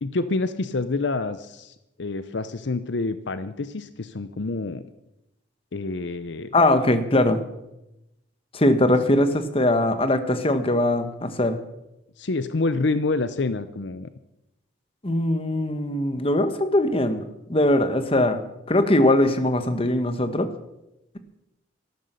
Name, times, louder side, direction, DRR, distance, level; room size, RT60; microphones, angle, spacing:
voice 1, 0.0-4.8 5.7-6.5 12.2-14.1, left 3 dB, 65° left, 12 dB, 0.7 m, -27 dB
voice 2, 6.5-7.4 8.5-11.6 15.0-17.2 17.5-18.4 18.7-20.5, left 1 dB, 30° left, 9 dB, 1.2 m, -21 dB
13.5 x 12.0 x 6.7 m, 0.90 s
head